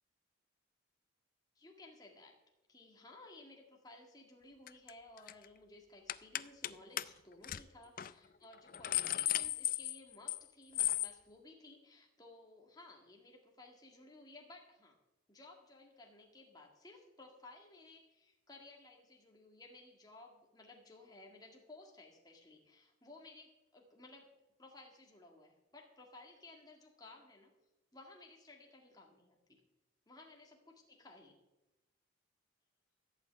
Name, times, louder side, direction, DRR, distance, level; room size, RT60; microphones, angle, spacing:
voice 1, 1.6-2.3 2.7-15.0 15.3-24.3 24.6-27.5 27.9-29.6 30.1-31.4, left 2 dB, 20° left, 0 dB, 1.9 m, -57 dB
sound 1, 4.7-4.9 5.2-5.4 6.1-6.7 7.0-7.1 7.4-7.6 8.0-8.1 8.5-10.4 10.7-11.1, left 14 dB, 45° left, 0.4 m, -35 dB
15.5 x 5.9 x 8.7 m, 0.96 s
head